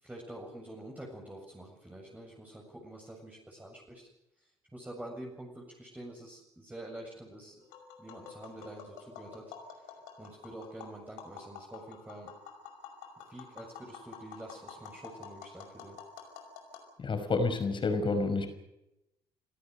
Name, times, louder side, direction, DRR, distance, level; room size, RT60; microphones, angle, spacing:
voice 1, 0.0-4.1 4.7-7.5 8.0-9.5 10.2-12.4 13.3-16.0, right 1 dB, 10° right, -2 dB, 7.4 m, -47 dB
Tap, 7.6-16.8, left 7 dB, 70° left, 5.5 m, -49 dB
voice 2, 17.0-18.5, left 3 dB, 40° left, 9 dB, 5.5 m, -29 dB
29.0 x 17.0 x 6.7 m, 0.86 s
figure-of-eight pair, 50°, 13 cm